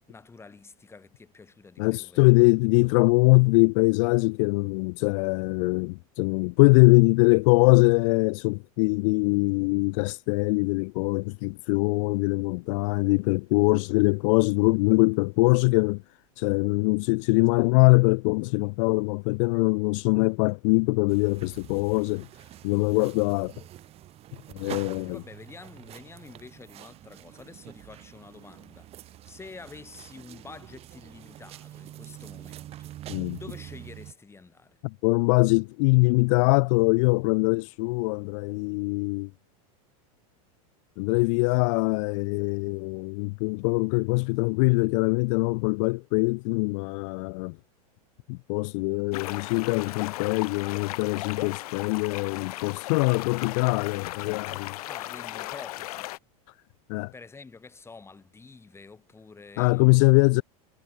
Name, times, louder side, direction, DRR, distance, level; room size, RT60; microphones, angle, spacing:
voice 1, 0.1-2.2 25.1-33.0 33.3-34.8 54.9-56.1 57.1-60.3, left 4 dB, 15° left, 6.1 m, -48 dB
voice 2, 1.8-16.0 16.4-22.3 22.6-23.5 24.5-25.2 33.1-33.4 34.8-39.3 41.0-47.6 48.3-54.8 56.9-57.1 59.6-60.4, left 30 dB, 55° left, 0.4 m, -23 dB
sound 1, 21.1-34.1, right 13 dB, 30° right, 0.7 m, -45 dB
sound 2, 49.1-56.2, left 17 dB, 75° left, 0.8 m, -36 dB
supercardioid pair, 125°, 19 cm